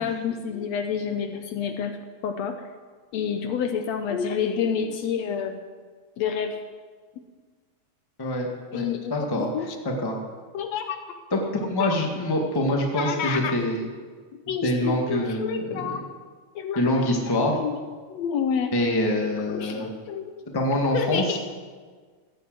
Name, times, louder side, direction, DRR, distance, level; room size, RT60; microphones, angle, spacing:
voice 1, 0.0-2.0 2.2-2.7 3.1-5.7 6.2-6.6 8.7-9.8 10.5-11.0 11.8-12.0 13.0-13.6 14.3-16.0 16.6-17.8 18.1-18.8 19.2-20.6 20.9-21.4, left 7 dB, 70° left, 7 dB, 1.8 m, -29 dB
voice 2, 9.1-9.5 9.8-10.1 11.3-13.9 14.6-16.0 16.7-17.5 18.7-19.9 20.5-21.2, left 1 dB, 10° left, 1 dB, 1.3 m, -25 dB
15.0 x 9.2 x 7.8 m, 1.5 s
omnidirectional pair, 3.4 m